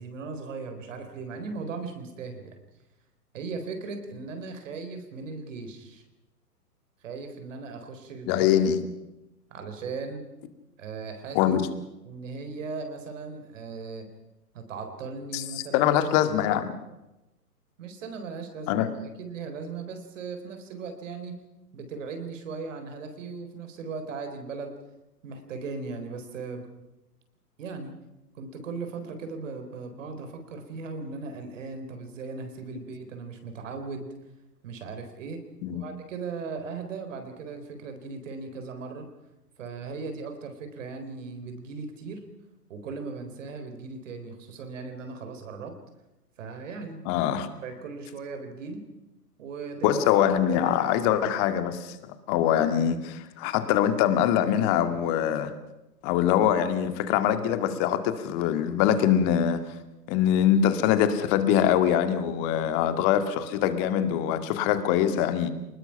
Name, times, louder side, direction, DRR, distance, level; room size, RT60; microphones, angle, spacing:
voice 1, 0.0-2.6 3.3-6.0 7.0-8.5 9.5-10.2 10.8-11.4 12.0-14.1 14.5-15.9 17.8-18.9 19.2-21.4 21.7-24.8 25.2-26.7 27.6-27.9 28.3-34.1 34.6-35.4 35.7-39.1 39.6-42.3 42.7-45.7 46.4-47.2 47.6-48.8 49.4-50.0 50.4-50.7, right 4 dB, 50° right, 7 dB, 4.1 m, -38 dB
voice 2, 8.3-8.8 11.3-11.7 15.3-15.4 15.7-16.7 18.7-18.9 35.6-35.8 47.1-47.5 49.8-55.5 56.0-59.6 60.1-65.5, left 10 dB, 30° left, 9 dB, 2.1 m, -23 dB
29.5 x 20.0 x 5.9 m, 0.97 s
figure-of-eight pair, 110°, 47 cm